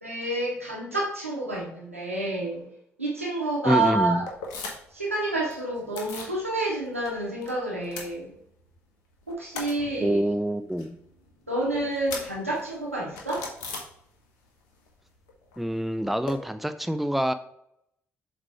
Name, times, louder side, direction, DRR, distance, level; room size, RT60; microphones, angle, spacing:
voice 1, 0.0-2.6 3.0-4.3 4.9-8.3 9.3-10.2 11.5-13.5, right 2 dB, 90° right, -4 dB, 1.3 m, -29 dB
voice 2, 3.6-4.2 10.0-11.0 15.6-17.3, equal, ahead, 10 dB, 0.5 m, -26 dB
sound 1, 4.2-5.0 5.3-6.4 6.7-7.5 7.8-8.8 9.1-14.5 14.7-16.3, left 4 dB, 65° left, 1.1 m, -40 dB
7.3 x 3.2 x 4.8 m, 0.73 s
figure-of-eight pair, 40°, 7 cm